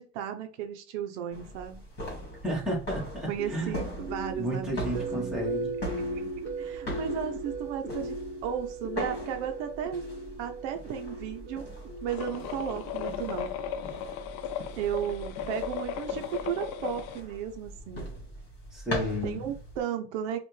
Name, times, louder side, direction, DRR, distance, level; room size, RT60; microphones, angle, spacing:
voice 1, 0.0-1.8 3.3-5.4 6.6-10.1 10.4-11.7 12.0-13.5 14.7-18.1 19.2-20.4, right 9 dB, 65° right, 0.8 m, -34 dB
sound 1, 1.3-19.8, equal, 25° left, 2.4 m, -41 dB
voice 2, 2.4-3.8 4.4-5.7 18.7-19.4, equal, ahead, 1.4 m, -32 dB
sound 2, 3.4-13.5, right 2 dB, 30° right, 0.7 m, -38 dB
sound 3, 12.1-17.2, left 8 dB, 45° left, 0.5 m, -36 dB
5.4 x 2.5 x 3.3 m
supercardioid pair, 155°, 38 cm